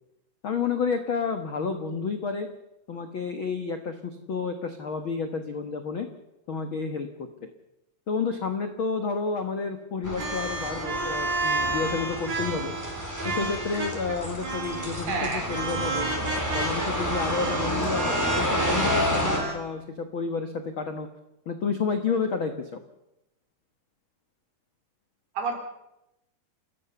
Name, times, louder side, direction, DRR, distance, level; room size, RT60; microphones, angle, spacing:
voice 1, 0.4-2.5 2.9-6.1 6.5-7.5 8.1-12.7 13.2-16.1 16.5-21.1 21.4-22.8, left 5 dB, 80° left, 7 dB, 1.1 m, -30 dB
sound 1, 10.0-19.4, equal, 5° left, 4.0 m, -30 dB
sound 2, 10.2-14.1 14.4-15.0 15.5-19.5, right 3 dB, 45° right, 4.9 m, -31 dB
voice 2, 15.1-15.5 25.4-25.5, right 4 dB, 75° right, 4 dB, 5.5 m, -28 dB
28.5 x 14.5 x 7.0 m, 0.89 s
omnidirectional pair, 4.6 m